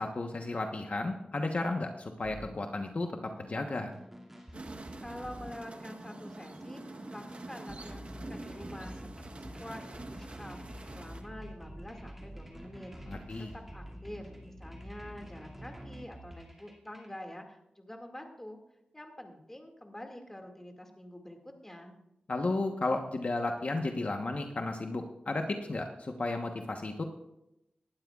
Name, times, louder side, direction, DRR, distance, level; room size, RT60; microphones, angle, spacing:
voice 1, 0.0-3.9 13.1-13.5 22.3-27.0, left 2 dB, 50° left, 4 dB, 1.1 m, -33 dB
sound 1, 2.2-17.2, equal, 10° right, 2.3 m, -48 dB
sound 2, 4.5-11.2, right 2 dB, 45° right, 1.1 m, -46 dB
voice 2, 5.0-10.6 10.9-12.9 13.5-18.6 18.9-22.0, left 1 dB, 15° left, 3 dB, 2.1 m, -47 dB
19.0 x 12.0 x 2.4 m, 0.86 s
wide cardioid pair, 80°, 3 cm